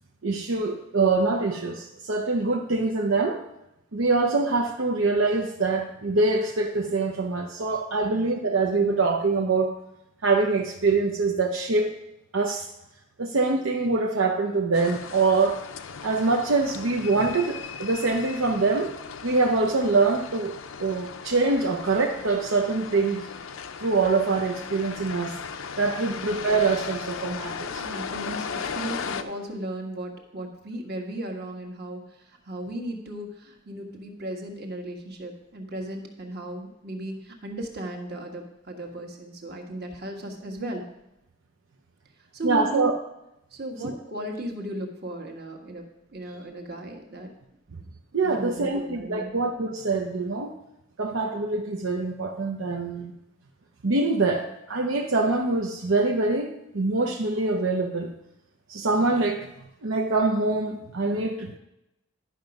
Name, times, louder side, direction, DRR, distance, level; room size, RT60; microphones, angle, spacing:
voice 1, 0.2-3.4 3.9-9.7 10.2-11.9 12.3-12.7 13.2-15.6 16.0-18.9 19.2-20.5 20.8-23.3 23.8-25.4 25.8-27.9 42.4-43.0 43.8-43.9 48.1-50.5 51.0-53.1 53.8-58.1 58.7-59.5 59.8-61.6, right 3 dB, 80° right, 2 dB, 0.7 m, -24 dB
sound 1, 14.7-29.2, left 6 dB, 80° left, 0.6 m, -37 dB
voice 2, 27.8-32.0 32.5-40.8 42.3-42.9 43.5-45.8 46.1-47.3 48.2-49.3, right 1 dB, 50° right, 1 dB, 1.5 m, -35 dB
11.0 x 5.9 x 5.3 m, 0.87 s
head